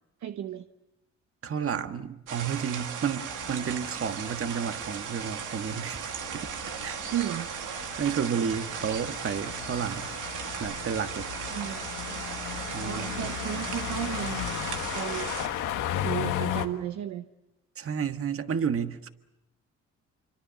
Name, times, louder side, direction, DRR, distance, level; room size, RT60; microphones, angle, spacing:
voice 1, 0.2-0.6 7.1-8.1 11.5-12.2 12.8-14.4 14.9-15.3 16.0-17.3, right 11 dB, 70° right, 1.0 m, -34 dB
voice 2, 1.4-6.5 6.8-7.0 8.0-10.1 10.6-11.3 12.7-13.3 17.8-19.1, right 7 dB, 45° right, 1.6 m, -31 dB
sound 1, 2.3-15.5, right 7 dB, 85° right, 2.3 m, -37 dB
sound 2, 3.3-16.7, left 11 dB, 90° left, 1.6 m, -36 dB
26.5 x 24.0 x 6.9 m
cardioid pair, 90°, 30 cm